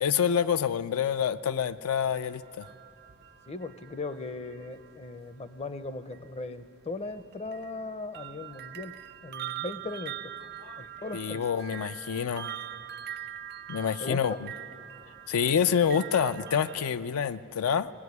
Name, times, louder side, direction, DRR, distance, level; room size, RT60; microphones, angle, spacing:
voice 1, 0.0-2.7 10.6-10.8 11.1-12.5 13.7-14.5 15.3-17.9, left 7 dB, 75° left, 12 dB, 0.4 m, -27 dB
sound 1, 2.0-5.1 6.1-6.3 7.0-16.9, right 11 dB, 45° right, 0.5 m, -43 dB
voice 2, 3.5-9.0 9.2-10.3 10.8-11.4 14.0-14.4, left 3 dB, 25° left, 11 dB, 0.5 m, -38 dB
19.0 x 18.0 x 9.4 m, 2.7 s
head